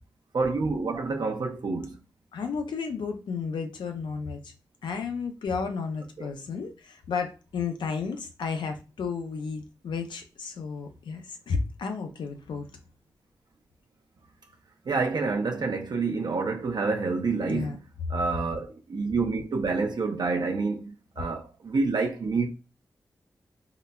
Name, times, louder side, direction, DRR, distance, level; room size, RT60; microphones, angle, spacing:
voice 1, 0.3-2.0 6.2-6.3 14.8-17.8 18.1-22.5, right 4 dB, 65° right, 0.6 m, -28 dB
voice 2, 2.3-4.5 4.8-12.7 17.5-17.8, left 5 dB, 85° left, 0.5 m, -32 dB
3.8 x 2.1 x 2.3 m
cardioid pair, 50°, 8 cm